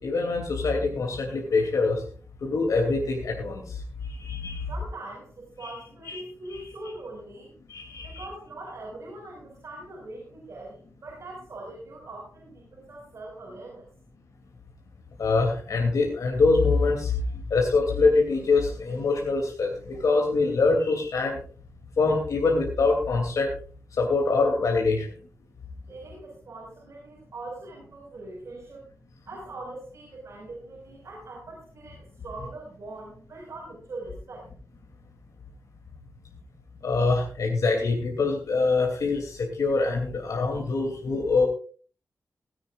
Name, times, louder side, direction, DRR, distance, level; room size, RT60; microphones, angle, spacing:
voice 1, 0.0-2.0 2.4-3.6 4.2-4.6 6.0-6.2 6.5-6.6 7.7-8.2 15.2-17.2 17.5-21.4 22.0-23.5 24.0-25.1 36.8-41.5, left 3 dB, 75° left, 1 dB, 2.8 m, -24 dB
voice 2, 4.7-7.5 8.0-13.9 25.9-28.8 29.3-34.5, right 2 dB, 55° right, -3 dB, 5.4 m, -42 dB
17.5 x 16.0 x 2.5 m, 0.39 s
wide cardioid pair, 145°, 6 cm